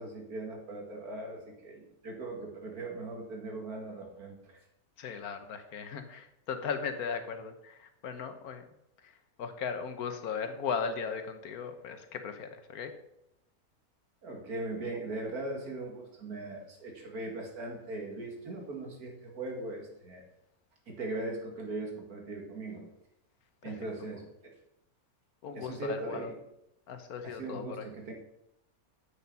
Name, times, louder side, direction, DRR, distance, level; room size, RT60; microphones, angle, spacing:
voice 1, 0.0-4.6 14.2-20.2 20.9-22.9 23.6-24.5 25.5-26.3 27.2-28.1, right 2 dB, 85° right, 1 dB, 2.5 m, -39 dB
voice 2, 5.0-8.6 9.0-12.9 23.6-23.7 24.0-24.1 25.4-26.3 26.9-27.9, left 6 dB, 80° left, 8 dB, 1.5 m, -37 dB
8.4 x 6.5 x 5.4 m, 0.81 s
omnidirectional pair, 1.6 m